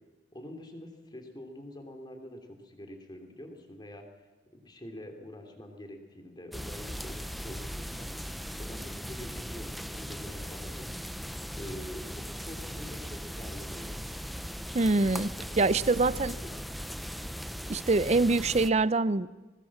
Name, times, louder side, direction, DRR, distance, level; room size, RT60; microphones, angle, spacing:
voice 1, 0.3-4.1 4.5-10.9 11.6-14.0 15.6-15.7, left 1 dB, 25° left, 4 dB, 3.2 m, -46 dB
sound 1, 6.5-18.7, equal, ahead, 0.7 m, -39 dB
voice 2, 14.7-16.4 17.7-19.3, right 3 dB, 35° right, 17 dB, 0.6 m, -25 dB
20.5 x 20.0 x 7.4 m, 1.2 s
head